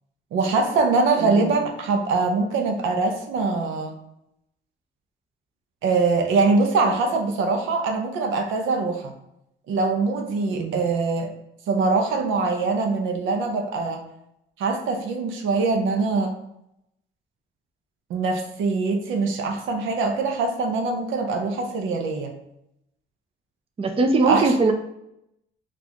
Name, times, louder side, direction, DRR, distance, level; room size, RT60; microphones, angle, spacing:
voice 1, 0.3-4.0 5.8-9.1 9.7-11.3 11.7-14.1 14.6-16.3 18.1-22.3 24.3-24.5, right 3 dB, 85° right, 3 dB, 0.7 m, -23 dB
voice 2, 1.2-1.6 10.5-10.8 23.8-24.7, right 3 dB, 30° right, 6 dB, 0.5 m, -21 dB
3.9 x 2.5 x 2.9 m, 0.80 s
cardioid pair, 90°, 20 cm